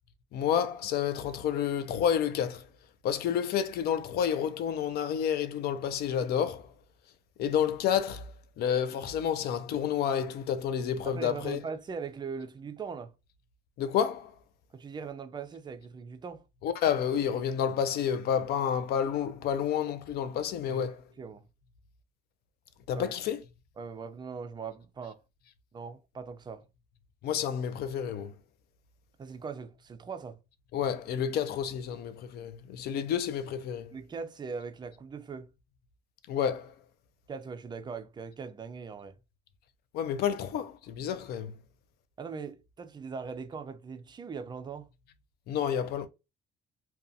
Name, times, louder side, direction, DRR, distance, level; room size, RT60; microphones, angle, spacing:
voice 1, 0.3-2.7 3.0-6.7 7.4-11.6 13.8-14.3 16.6-21.0 22.9-23.4 27.2-28.3 30.7-33.9 36.3-36.7 39.9-41.6 45.5-46.1, left 8 dB, 70° left, 0.5 m, -30 dB
voice 2, 11.0-13.1 14.7-16.4 20.7-20.9 21.2-21.5 22.9-23.1 23.8-25.2 25.7-26.7 29.2-30.4 33.9-35.5 37.3-39.2 40.5-40.6 42.2-44.9, right 5 dB, 25° right, 0.4 m, -40 dB
2.5 x 2.3 x 2.6 m
cardioid pair, 110°, 17 cm